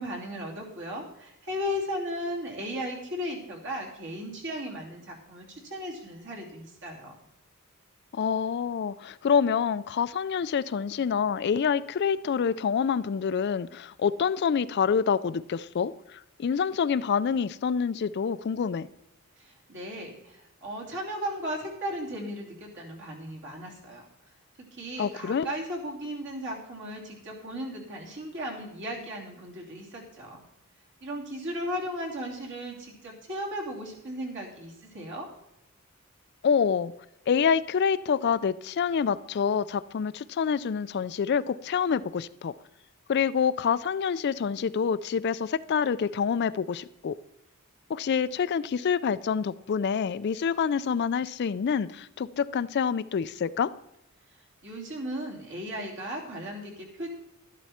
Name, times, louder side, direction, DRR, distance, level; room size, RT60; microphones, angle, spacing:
voice 1, 0.0-7.1 19.4-24.0 24.6-30.4 31.0-35.3 54.6-57.1, equal, 55° right, -1 dB, 3.1 m, -36 dB
voice 2, 8.1-18.9 25.0-25.5 36.4-36.9 37.3-42.5 43.1-47.1 47.9-53.7, left 6 dB, 50° left, 15 dB, 0.3 m, -27 dB
12.5 x 11.5 x 4.3 m, 0.84 s
head